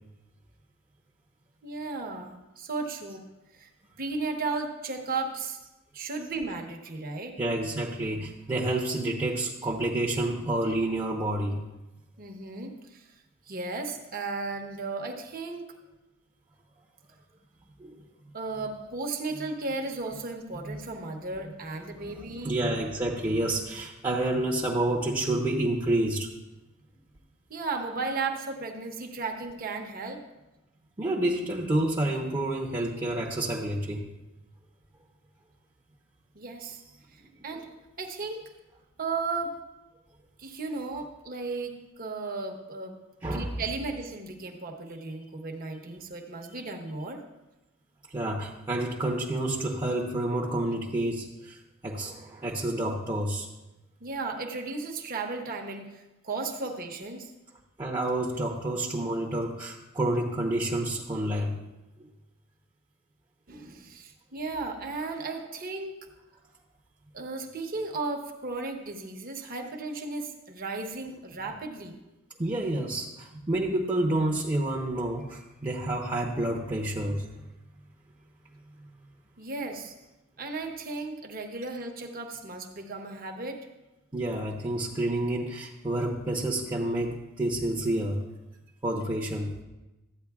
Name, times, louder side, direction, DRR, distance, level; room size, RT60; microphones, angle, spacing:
voice 1, 1.6-3.2 3.5-3.7 4.0-5.6 5.9-7.4 12.2-13.1 13.5-15.6 18.3-22.6 27.5-30.2 36.3-36.8 37.1-37.7 38.0-38.4 39.0-39.5 40.4-43.0 43.3-47.2 54.0-57.3 63.5-65.9 67.1-72.0 79.4-79.9 80.4-83.6, right 3 dB, 45° right, 3 dB, 1.0 m, -35 dB
voice 2, 7.4-11.6 17.8-17.9 19.3-19.4 20.6-20.8 21.8-26.3 31.0-34.1 37.2-37.6 43.2-43.8 45.8-46.0 48.1-53.5 57.8-61.6 62.0-62.1 71.4-71.5 72.4-77.3 84.1-88.2 88.8-89.6, right 1 dB, 20° right, -2 dB, 0.8 m, -29 dB
13.0 x 9.0 x 2.4 m, 1.0 s
head